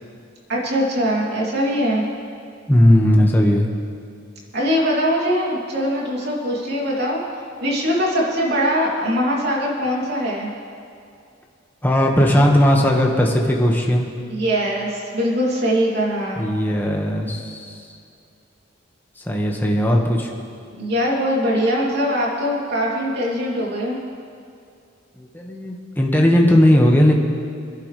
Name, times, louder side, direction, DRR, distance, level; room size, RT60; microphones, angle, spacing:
voice 1, 0.5-2.0 4.5-7.2 7.6-10.5 14.3-16.4 20.7-24.0, equal, 55° right, -4 dB, 3.0 m, -22 dB
voice 2, 2.7-3.7 11.8-14.1 16.4-17.8 19.2-20.3 25.2-27.1, left 1 dB, 10° left, -1 dB, 1.6 m, -17 dB
26.0 x 11.0 x 3.4 m, 2.4 s
head